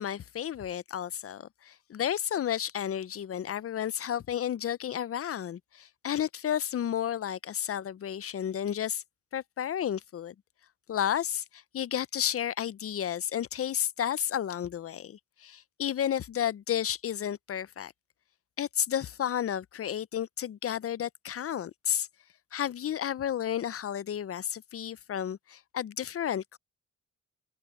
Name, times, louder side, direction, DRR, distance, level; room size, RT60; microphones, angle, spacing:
voice 1, 0.0-9.0 9.3-10.3 10.9-17.9 18.6-22.1 22.5-26.6, left 10 dB, 45° left, 0.5 m, -32 dB
cardioid pair, 95°, 31 cm